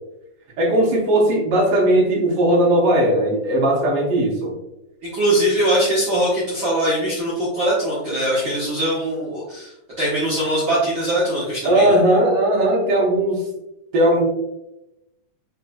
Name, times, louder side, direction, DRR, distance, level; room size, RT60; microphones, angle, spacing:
voice 1, 0.6-4.5 11.6-13.4 13.9-14.2, right 1 dB, 75° right, -2 dB, 1.3 m, -17 dB
voice 2, 5.0-9.7 10.0-12.0, right 1 dB, 50° right, -10 dB, 1.5 m, -21 dB
4.7 x 4.1 x 2.3 m, 0.91 s
omnidirectional pair, 3.7 m